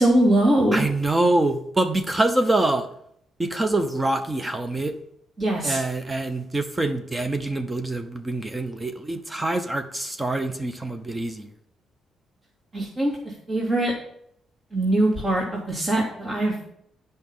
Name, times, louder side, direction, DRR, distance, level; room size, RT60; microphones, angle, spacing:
voice 1, 0.0-0.8 5.4-5.8 12.7-13.9 14.7-16.5, right 1 dB, 35° right, -4 dB, 2.5 m, -22 dB
voice 2, 0.7-2.9 3.4-5.0 5.6-11.5, right 2 dB, 20° right, 8 dB, 0.8 m, -25 dB
9.1 x 5.3 x 5.6 m, 0.71 s
cardioid pair, 90°, 0 cm